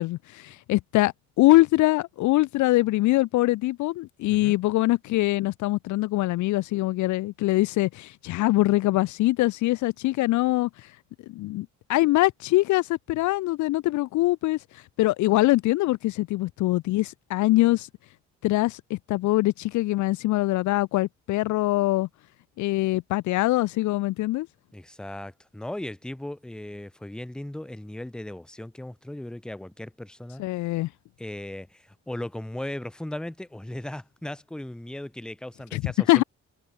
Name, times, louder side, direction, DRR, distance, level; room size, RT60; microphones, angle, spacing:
voice 1, 0.0-10.7 11.3-14.6 15.0-17.9 18.4-22.1 22.6-24.5 30.4-30.9 35.7-35.8 36.1-36.2, left 18 dB, 75° left, 0.4 m, -23 dB
voice 2, 24.7-30.4 31.2-36.2, left 1 dB, 5° left, 0.7 m, -37 dB
cardioid pair, 90°, 30 cm